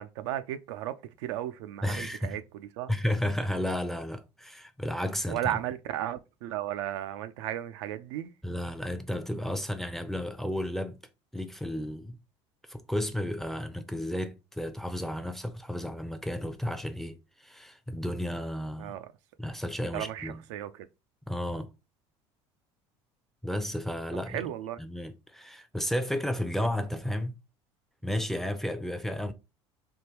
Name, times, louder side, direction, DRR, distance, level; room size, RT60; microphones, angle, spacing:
voice 1, 0.0-3.0 5.3-8.3 18.8-19.1 19.9-20.9 24.3-24.8, right 12 dB, 75° right, 0.4 m, -35 dB
voice 2, 1.8-2.4 2.9-5.6 8.4-11.0 11.3-12.2 12.7-19.0 19.4-20.4 21.3-21.7 23.4-24.4 24.8-27.4 28.0-29.3, left 1 dB, ahead, 0.5 m, -33 dB
3.5 x 2.2 x 2.9 m
hypercardioid pair, 70°, 15 cm